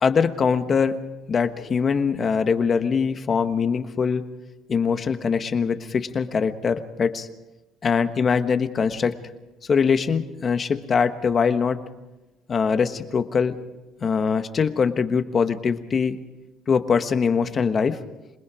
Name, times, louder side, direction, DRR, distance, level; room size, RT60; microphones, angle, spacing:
voice 1, 0.0-0.9 1.3-4.2 4.7-7.3 7.8-9.2 9.7-11.8 12.5-13.6 14.0-16.2 16.7-18.0, left 6 dB, 35° left, 9 dB, 1.3 m, -22 dB
27.0 x 20.0 x 5.0 m, 1.1 s
cardioid pair, 110°, 0 cm